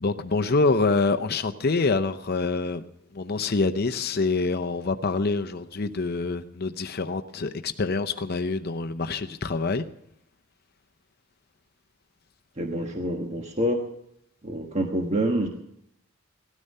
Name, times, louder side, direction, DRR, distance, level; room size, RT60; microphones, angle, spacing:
voice 1, 0.0-2.8 3.1-9.8, left 3 dB, 45° left, 8 dB, 0.7 m, -26 dB
voice 2, 12.6-13.8 14.4-15.5, equal, 30° right, 2 dB, 1.4 m, -26 dB
18.0 x 13.5 x 5.5 m, 0.77 s
head